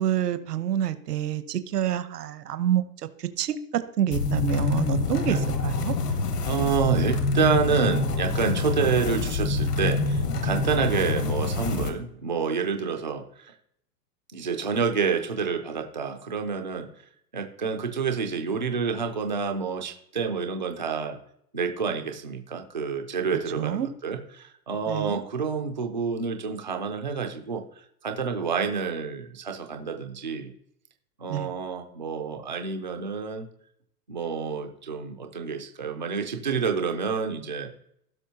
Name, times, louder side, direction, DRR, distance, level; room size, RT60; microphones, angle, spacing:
voice 1, 0.0-2.8 3.2-5.9 23.6-23.9 24.9-25.2 31.3-31.5, right 10 dB, 70° right, 12 dB, 1.0 m, -27 dB
sound 1, 4.1-11.9, left 3 dB, 70° left, 1.7 m, -26 dB
voice 2, 6.4-13.5 14.3-16.9 17.3-21.2 21.5-27.6 28.0-30.5 31.2-33.5 34.1-37.7, right 5 dB, 30° right, 5 dB, 0.4 m, -28 dB
16.0 x 6.0 x 2.8 m, 0.71 s
hypercardioid pair, 180°, 49 cm